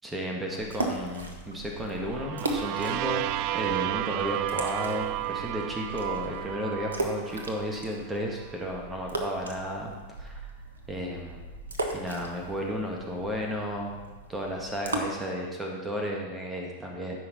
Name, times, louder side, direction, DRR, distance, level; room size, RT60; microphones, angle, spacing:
voice 1, 0.0-3.2 3.5-9.9 10.2-10.5 10.9-11.5 11.9-13.9 14.3-17.2, equal, 10° right, 0 dB, 1.6 m, -33 dB
sound 1, 0.5-15.0, right 2 dB, 70° right, 1.2 m, -38 dB
sound 2, 2.0-7.9, right 14 dB, 45° right, 0.3 m, -32 dB
14.0 x 5.8 x 4.1 m, 1.3 s
figure-of-eight pair, 90°, 0 cm